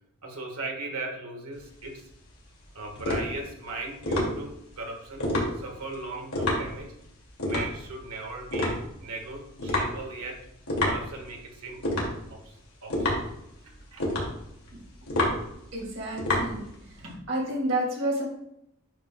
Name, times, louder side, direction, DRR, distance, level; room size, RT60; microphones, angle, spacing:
voice 1, 0.2-2.0 2.7-5.3 5.5-6.9 7.4-10.4 10.8-11.9 12.3-12.5 12.8-13.3 13.6-14.0 16.9-17.2, right 3 dB, 90° right, 1 dB, 1.6 m, -38 dB
sound 1, 1.5-17.1, left 1 dB, 85° left, 2.3 m, -30 dB
voice 2, 15.7-16.6 17.3-18.2, right 1 dB, 60° right, -3 dB, 2.5 m, -29 dB
8.6 x 5.7 x 2.3 m, 0.80 s
head